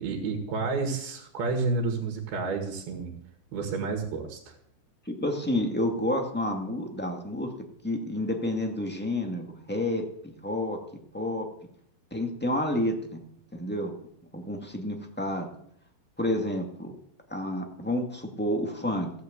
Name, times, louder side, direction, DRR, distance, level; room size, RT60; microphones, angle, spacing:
voice 1, 0.0-3.1 3.5-4.6, right 4 dB, 80° right, 3 dB, 3.8 m, -30 dB
voice 2, 5.0-7.5 7.8-10.8 11.1-11.5 12.1-13.0 13.5-13.9 14.3-15.5 16.2-16.9 17.3-19.1, left 1 dB, 10° left, 2 dB, 0.7 m, -29 dB
16.0 x 8.5 x 8.1 m, 0.68 s
omnidirectional pair, 4.3 m